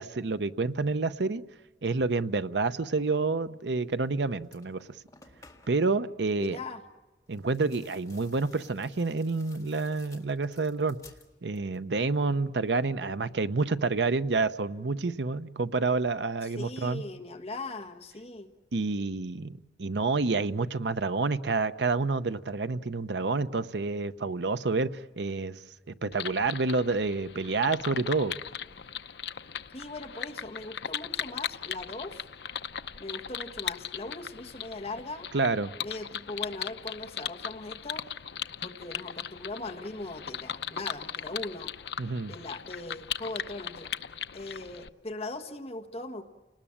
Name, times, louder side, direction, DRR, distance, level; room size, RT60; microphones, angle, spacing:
voice 1, 0.0-1.4 1.8-4.9 5.7-6.6 7.3-11.0 11.4-17.0 18.7-25.6 25.9-28.3 35.3-35.7 42.0-42.3, right 3 dB, 80° right, 0.8 m, -28 dB
sound 1, 4.0-4.1 4.4-5.9 7.3-11.9 12.1-12.7, left 4 dB, 20° left, 1.9 m, -57 dB
voice 2, 6.4-6.8 16.4-18.5 29.7-32.3 33.0-35.3 35.8-38.0 38.6-41.7 42.3-43.9 44.3-46.2, left 2 dB, 35° left, 1.4 m, -39 dB
sound 2, 26.1-44.9, left 8 dB, 75° left, 0.7 m, -38 dB
29.5 x 19.5 x 8.7 m
head